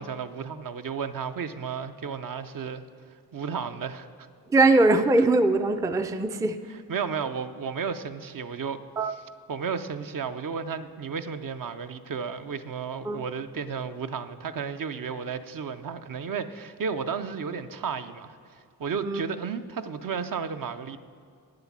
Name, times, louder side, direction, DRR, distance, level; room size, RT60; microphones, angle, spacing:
voice 1, 0.0-2.8 3.3-4.3 6.9-8.8 9.5-21.0, right 6 dB, 55° right, 10 dB, 0.6 m, -33 dB
voice 2, 4.5-6.6 9.0-9.1 13.0-13.2 19.0-19.2, right 2 dB, 10° right, 9 dB, 0.4 m, -21 dB
9.0 x 7.7 x 7.2 m, 2.2 s
cardioid pair, 85°, 40 cm